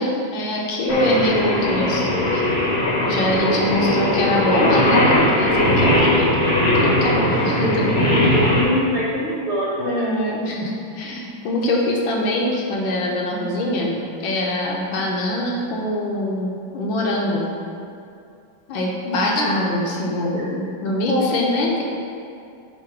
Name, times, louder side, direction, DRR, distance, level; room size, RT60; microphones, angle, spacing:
voice 1, 0.0-2.5 3.1-6.3 6.8-8.0 9.8-17.5 18.7-21.8, left 1 dB, 70° left, -2 dB, 1.5 m, -23 dB
Singing, 0.9-8.6, left 1 dB, 40° left, 1.0 m, -19 dB
voice 2, 7.3-10.1 19.3-19.6 20.3-20.5 21.1-21.4, equal, 75° right, -6 dB, 0.6 m, -25 dB
8.3 x 2.8 x 4.5 m, 2.5 s
omnidirectional pair, 2.3 m